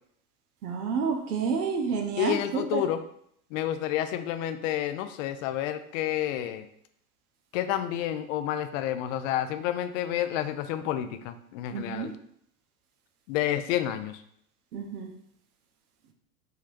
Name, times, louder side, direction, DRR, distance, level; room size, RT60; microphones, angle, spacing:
voice 1, 0.6-2.9 11.7-12.1 14.7-15.1, right 5 dB, 80° right, 4 dB, 0.7 m, -29 dB
voice 2, 2.2-3.0 3.5-6.7 7.5-12.1 13.3-14.2, left 12 dB, 60° left, 10 dB, 0.5 m, -29 dB
3.7 x 3.1 x 2.5 m, 0.69 s
hypercardioid pair, 85°, 45 cm